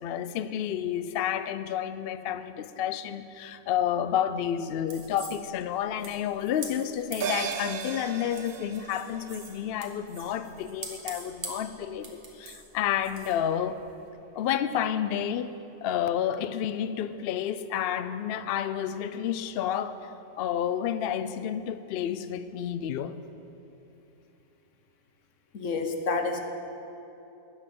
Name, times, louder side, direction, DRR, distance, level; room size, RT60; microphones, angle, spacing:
voice 1, 0.0-13.8 14.3-15.5 15.8-23.2, left 9 dB, 90° left, 0.5 m, -30 dB
sound 1, 4.9-14.1, right 3 dB, 40° right, 1.5 m, -45 dB
sound 2, 7.2-11.9 12.2-12.3, right 7 dB, 70° right, 0.5 m, -38 dB
voice 2, 25.5-26.4, left 3 dB, 60° left, 1.2 m, -29 dB
13.0 x 9.0 x 5.3 m
omnidirectional pair, 1.6 m